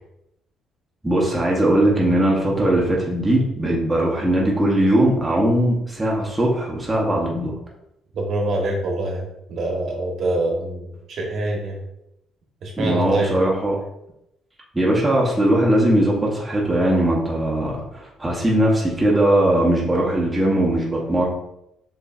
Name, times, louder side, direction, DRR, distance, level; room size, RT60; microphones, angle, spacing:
voice 1, 1.0-7.6 12.8-13.7 14.7-21.2, right 1 dB, 10° right, -3 dB, 0.8 m, -19 dB
voice 2, 8.1-11.8 12.6-13.3, right 2 dB, 50° right, 0 dB, 1.1 m, -25 dB
6.7 x 3.1 x 2.4 m, 0.83 s
cardioid pair, 155°, 0 cm